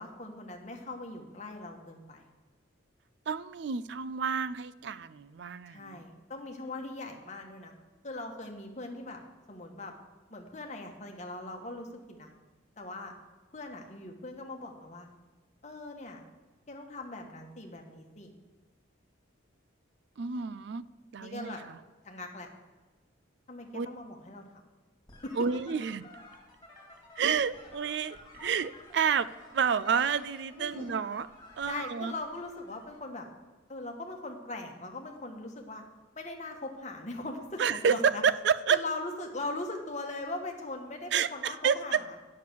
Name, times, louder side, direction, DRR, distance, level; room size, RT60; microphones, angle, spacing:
voice 1, 0.0-2.3 5.7-7.7 8.0-9.2 9.5-9.9 10.3-12.3 12.8-13.1 13.5-15.1 15.6-16.2 16.7-18.3 21.2-21.6 22.0-22.5 23.5-24.4 25.2-25.3 30.6-30.9 31.7-33.3 33.7-35.8 36.1-38.2 38.7-42.2, left 2 dB, 35° left, 2 dB, 1.2 m, -40 dB
voice 2, 3.3-6.0 20.2-20.8 21.1-21.8 23.7-23.9 25.3-26.1 27.2-31.3 31.6-32.1 37.6-38.8 41.1-42.0, right 6 dB, 60° right, 17 dB, 0.3 m, -29 dB
sound 1, 25.1-33.0, left 2 dB, 20° left, 2.4 m, -53 dB
8.5 x 6.4 x 6.8 m, 1.2 s
head